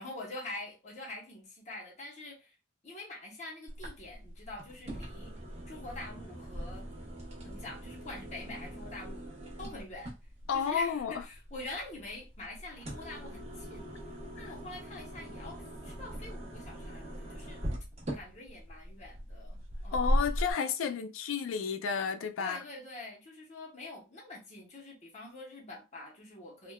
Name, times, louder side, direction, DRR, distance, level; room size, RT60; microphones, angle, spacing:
voice 1, 0.0-2.5 2.8-5.3 5.7-6.9 7.4-9.2 9.6-10.1 10.5-13.9 14.4-17.6 18.1-20.1 20.5-20.6 22.4-26.7, left 2 dB, 35° left, 0.9 m, -45 dB
sound 1, 3.7-20.5, equal, 30° right, 1.0 m, -39 dB
voice 2, 10.5-11.2 14.4-14.5 19.9-22.6, left 6 dB, 75° left, 0.4 m, -32 dB
3.4 x 2.4 x 2.2 m
head